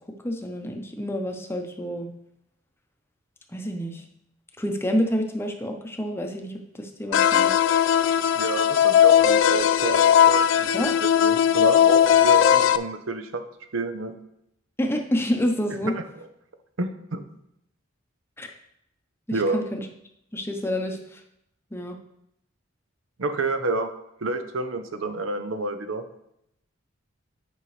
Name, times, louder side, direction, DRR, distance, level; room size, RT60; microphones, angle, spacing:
voice 1, 0.2-2.1 3.5-4.0 4.6-7.5 10.7-10.9 14.8-15.9 18.4-18.5 19.3-19.9 20.3-21.2 21.7-22.0, equal, 10° left, 4 dB, 0.7 m, -28 dB
sound 1, 7.1-12.8, left 9 dB, 70° left, 0.3 m, -18 dB
voice 2, 8.4-13.4 13.7-14.1 15.8-15.9 16.8-17.2 19.3-19.6 23.2-23.9 24.2-26.0, right 2 dB, 80° right, 8 dB, 0.7 m, -29 dB
9.5 x 5.3 x 3.3 m, 0.78 s
head